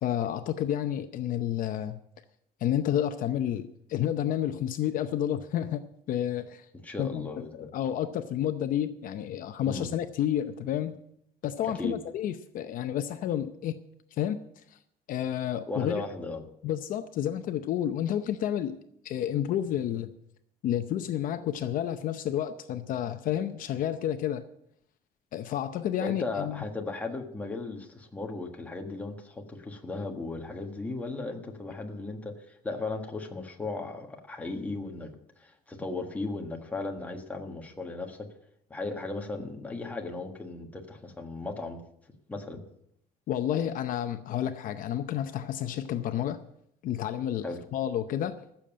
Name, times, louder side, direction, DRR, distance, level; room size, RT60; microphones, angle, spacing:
voice 1, 0.0-2.0 2.6-6.7 7.0-11.0 11.4-13.8 14.1-14.4 14.7-14.8 15.1-16.0 16.6-18.8 19.0-20.1 20.6-24.4 25.3-26.6 43.3-46.4 46.8-47.4 47.7-48.4, left 10 dB, 55° left, 0.7 m, -30 dB
voice 2, 6.8-7.7 9.7-9.9 11.6-12.0 15.7-16.4 26.0-38.3 38.7-41.8 42.3-42.6 47.4-47.6, left 3 dB, 10° left, 1.4 m, -36 dB
14.5 x 7.1 x 8.7 m
cardioid pair, 175°, 17 cm